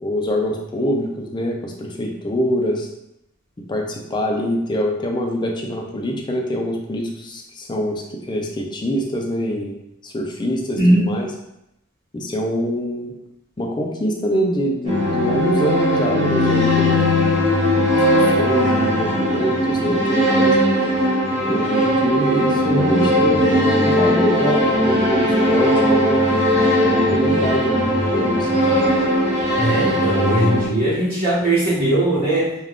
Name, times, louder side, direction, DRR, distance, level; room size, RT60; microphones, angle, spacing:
voice 1, 0.0-2.9 3.7-9.8 10.0-11.3 12.1-13.1 13.6-17.2 17.7-20.6 21.5-26.2 26.8-28.6, equal, 20° left, 1 dB, 0.3 m, -24 dB
voice 2, 10.8-11.1 29.6-32.5, right 1 dB, 50° right, -11 dB, 0.9 m, -19 dB
sound 1, 14.8-30.7, equal, 30° right, 0.6 m, -18 dB
2.4 x 2.3 x 3.4 m, 0.85 s
head